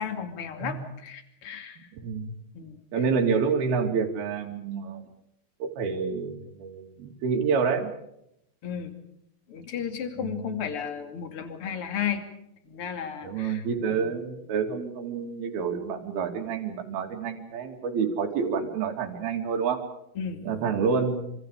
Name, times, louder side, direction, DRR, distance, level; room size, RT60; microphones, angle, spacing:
voice 1, 0.0-1.9 2.5-2.8 8.6-8.9 9.5-12.2 12.7-14.1 20.2-20.4, left 8 dB, 35° left, 7 dB, 2.9 m, -34 dB
voice 2, 2.0-2.3 2.9-5.0 5.6-7.9 10.2-10.5 13.2-19.8 20.4-21.3, right 5 dB, 65° right, 3 dB, 4.6 m, -28 dB
28.0 x 26.0 x 5.0 m, 0.78 s
omnidirectional pair, 4.9 m